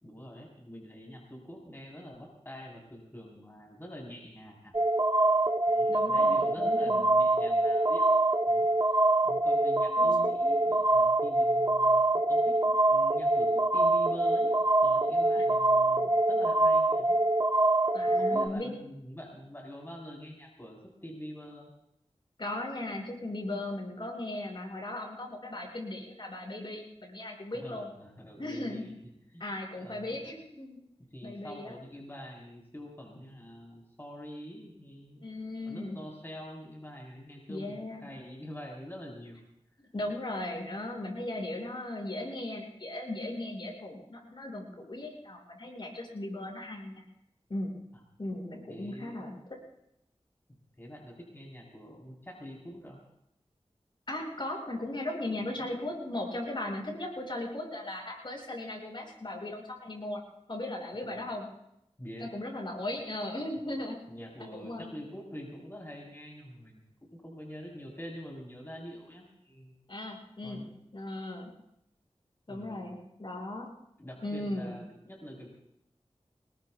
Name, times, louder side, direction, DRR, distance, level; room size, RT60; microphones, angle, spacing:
voice 1, 0.0-4.8 5.7-8.0 8.5-9.0 9.2-14.5 14.8-17.2 18.0-21.7 27.5-28.9 29.3-29.4 29.8-30.2 31.1-35.2 35.7-39.4 48.7-49.3 50.5-53.0 55.6-55.7 61.0-61.1 62.0-62.3 64.1-69.7 70.4-70.7 72.5-72.9 74.0-75.5, equal, 20° left, -3 dB, 3.9 m, -45 dB
sound 1, 4.7-18.5, right 2 dB, 35° right, 1.1 m, -25 dB
voice 2, 5.9-7.0 10.0-10.3 15.4-15.5 17.9-18.8 22.4-27.9 28.4-28.9 29.4-30.8 31.2-31.8 35.2-36.0 37.5-38.1 39.9-47.0 47.5-47.7 48.2-49.4 54.1-60.2 60.5-61.5 62.2-64.0 64.4-64.9 69.9-70.7 70.9-71.5 72.5-73.7 74.2-74.7, left 1 dB, 50° left, -2 dB, 6.0 m, -37 dB
25.0 x 20.5 x 2.3 m, 0.80 s
wide cardioid pair, 65°, 11 cm